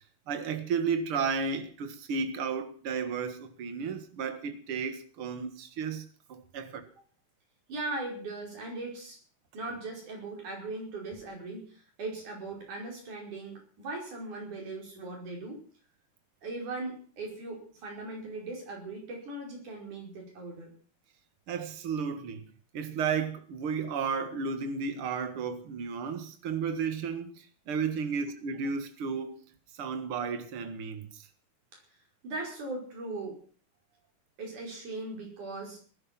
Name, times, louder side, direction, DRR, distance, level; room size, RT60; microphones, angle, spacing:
voice 1, 0.3-6.0 6.3-6.8 21.5-22.5 22.7-27.3 27.7-29.5 29.8-31.1, right 5 dB, 50° right, 2.3 m, -33 dB
voice 2, 7.7-9.2 9.5-15.6 16.4-20.7 31.7-31.8 32.2-33.4 34.4-35.8, right 2 dB, 70° right, 6.7 m, -39 dB
19.0 x 11.5 x 6.0 m
omnidirectional pair, 3.6 m